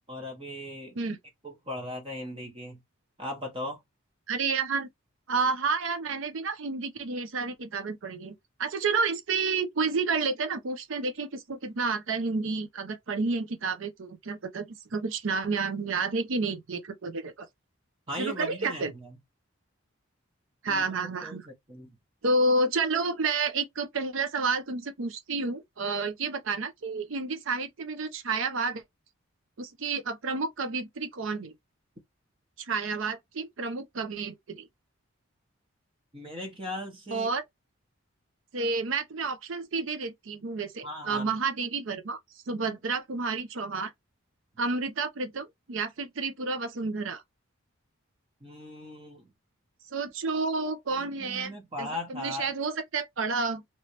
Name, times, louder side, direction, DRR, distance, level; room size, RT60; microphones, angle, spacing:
voice 1, 0.1-1.0 1.4-2.8 3.2-3.8 18.1-19.1 20.7-20.8 21.2-21.9 36.1-37.3 40.8-41.3 48.4-49.3 51.0-52.5, left 1 dB, 25° right, 0.9 m, -38 dB
voice 2, 4.3-4.9 5.3-17.5 18.2-18.9 20.6-21.5 22.2-28.8 29.6-31.5 32.6-34.7 37.1-37.4 38.5-42.2 42.5-43.9 44.6-47.2 49.9-53.6, right 4 dB, 65° right, 0.6 m, -30 dB
3.1 x 3.0 x 2.9 m
head